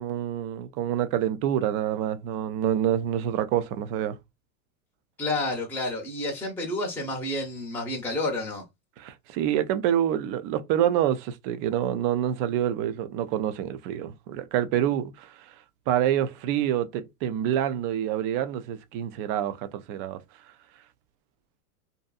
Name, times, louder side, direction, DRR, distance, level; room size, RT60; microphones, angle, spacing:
voice 1, 0.0-4.2 9.0-15.5 15.9-20.2, right 10 dB, 35° right, 0.4 m, -27 dB
voice 2, 5.2-8.6, left 2 dB, 5° left, 0.6 m, -30 dB
2.6 x 2.5 x 2.3 m
hypercardioid pair, 115°, 45 cm